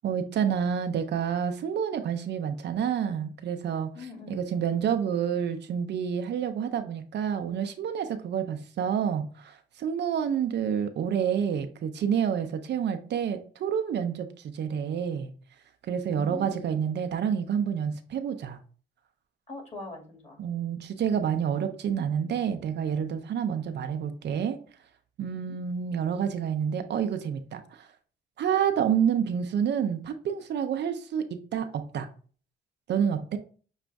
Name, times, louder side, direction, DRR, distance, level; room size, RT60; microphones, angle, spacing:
voice 1, 0.0-15.3 15.8-18.6 20.4-24.6 25.2-27.9 28.4-32.1 32.9-33.4, right 8 dB, 60° right, 8 dB, 0.6 m, -28 dB
voice 2, 4.0-4.4 16.1-16.6 19.5-20.4 25.4-25.6, left 2 dB, 30° left, 0 dB, 2.0 m, -42 dB
6.2 x 2.5 x 3.4 m, 0.41 s
cardioid pair, 90°, 20 cm